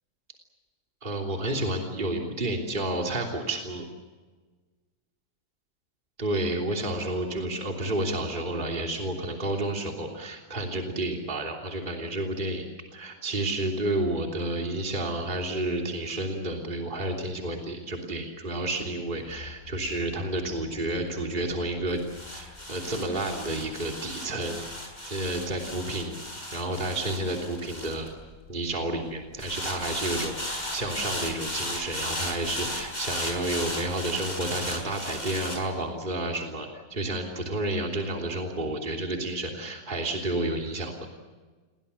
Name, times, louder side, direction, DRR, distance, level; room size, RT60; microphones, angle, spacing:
voice 1, 1.0-3.8 6.2-12.6 12.9-22.0 22.3-24.7 25.0-26.2 26.5-28.1 28.5-41.1, right 1 dB, 25° right, 1 dB, 3.3 m, -30 dB
sound 1, 19.3-28.7 29.4-35.6, left 1 dB, 20° left, 7.0 m, -36 dB
29.0 x 22.5 x 7.0 m, 1.4 s
omnidirectional pair, 2.0 m